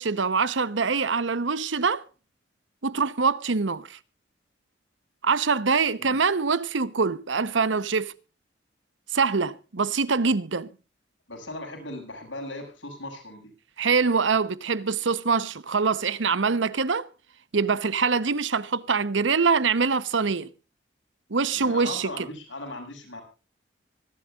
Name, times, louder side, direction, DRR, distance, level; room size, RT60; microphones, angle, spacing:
voice 1, 0.0-2.0 2.8-4.0 5.2-8.1 9.1-10.7 13.8-17.1 17.5-20.5 21.3-22.1, right 5 dB, 80° right, 0.9 m, -24 dB
voice 2, 11.3-13.5 21.5-23.2, left 2 dB, 85° left, 6.9 m, -38 dB
25.5 x 12.0 x 2.4 m
head